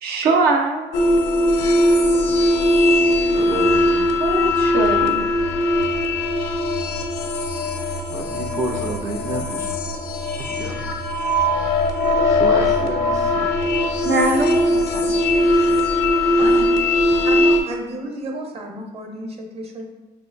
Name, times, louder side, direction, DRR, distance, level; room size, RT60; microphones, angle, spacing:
voice 1, 0.0-0.9 4.2-5.3 14.0-14.6 14.9-15.1, right 3 dB, 70° right, 3 dB, 0.5 m, -21 dB
sound 1, 0.9-17.6, left 1 dB, 85° left, 0.6 m, -19 dB
voice 2, 3.3-4.2 8.1-9.7 10.4-10.8 12.2-13.5, right 2 dB, 20° right, 1 dB, 0.4 m, -30 dB
voice 3, 16.3-16.6 17.2-19.9, right 1 dB, 35° right, 2 dB, 0.8 m, -32 dB
4.8 x 2.9 x 2.5 m, 1.2 s
cardioid pair, 110°, 17 cm